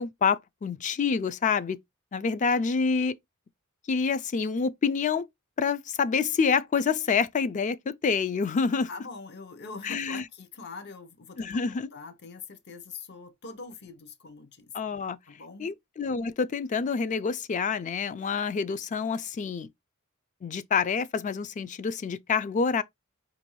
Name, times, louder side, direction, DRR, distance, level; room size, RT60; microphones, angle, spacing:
voice 1, 0.0-1.8 2.1-3.1 3.9-5.3 5.6-8.9 9.8-10.2 11.4-11.9 14.7-15.2 15.6-19.7 20.4-22.8, left 5 dB, 35° left, 0.3 m, -27 dB
voice 2, 8.9-14.7 15.3-15.7, left 4 dB, 50° left, 0.7 m, -43 dB
5.2 x 2.5 x 3.0 m
head